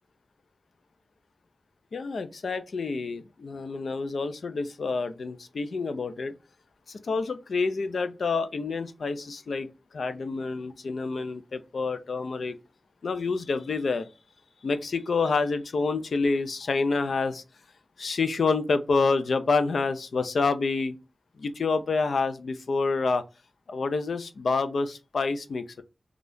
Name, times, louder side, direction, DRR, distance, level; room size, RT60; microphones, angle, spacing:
voice 1, 1.9-6.3 6.9-12.6 13.0-14.1 14.6-17.4 18.0-21.0 21.4-23.2 23.7-25.8, left 4 dB, 85° left, 0.4 m, -28 dB
3.4 x 2.4 x 2.6 m
wide cardioid pair, 70°, 0 cm